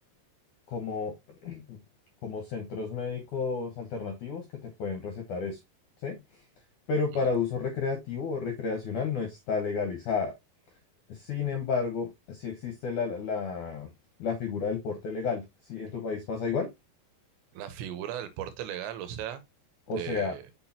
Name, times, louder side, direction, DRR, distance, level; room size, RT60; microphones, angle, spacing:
voice 1, 0.7-1.1 1.4-1.8 2.2-5.6 6.0-6.4 6.9-10.3 11.1-13.9 14.2-16.7 19.9-20.4, left 5 dB, 65° left, 2.1 m, -32 dB
voice 2, 17.5-19.4 19.9-20.4, right 10 dB, 90° right, 3.3 m, -37 dB
6.4 x 6.1 x 2.9 m
omnidirectional pair, 5.0 m